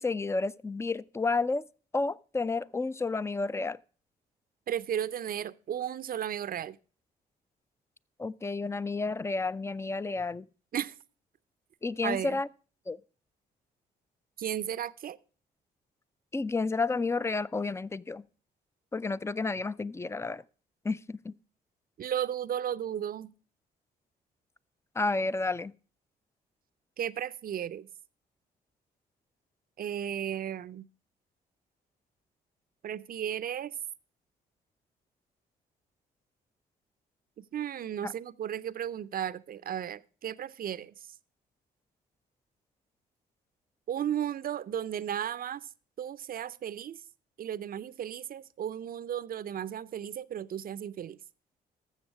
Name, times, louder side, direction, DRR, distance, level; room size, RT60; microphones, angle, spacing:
voice 1, 0.0-1.6 1.9-3.8 8.2-10.5 11.8-12.5 12.9-13.0 16.3-18.2 18.9-20.4 20.8-21.3 25.0-25.7 38.0-38.1, left 3 dB, 15° left, 0.4 m, -31 dB
voice 2, 4.7-6.8 10.7-10.9 12.0-12.4 14.4-15.2 22.0-23.3 27.0-27.9 29.8-30.9 32.8-33.7 37.4-40.9 43.9-45.7 46.0-47.0 47.4-51.2, right 10 dB, 50° right, 0.5 m, -34 dB
13.5 x 7.1 x 4.7 m
supercardioid pair, 55°, 19 cm